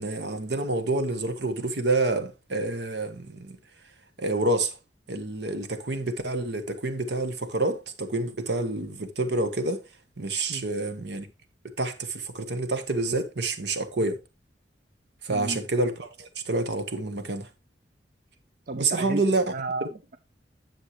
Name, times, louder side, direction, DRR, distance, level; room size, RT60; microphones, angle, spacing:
voice 1, 0.0-3.6 4.2-4.8 5.1-9.8 10.2-11.3 11.8-14.2 15.2-17.5 18.7-19.4 19.8-19.9, right 2 dB, 65° right, 1.3 m, -28 dB
voice 2, 15.3-15.6 18.7-19.2 19.5-20.2, right 3 dB, 50° right, 0.6 m, -33 dB
10.0 x 7.4 x 3.1 m
head